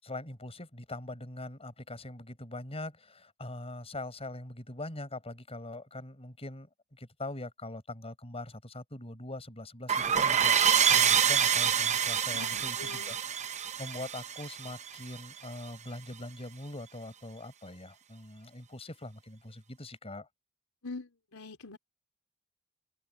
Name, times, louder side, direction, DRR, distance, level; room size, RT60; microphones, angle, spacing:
voice 1, 0.0-10.6 10.9-13.4 13.8-20.3, left 2 dB, 30° left, 6.2 m, -42 dB
sound 1, 9.9-15.2, right 8 dB, 35° right, 0.7 m, -26 dB
voice 2, 12.3-13.2 20.8-21.8, left 3 dB, 80° left, 4.2 m, -43 dB
open air
head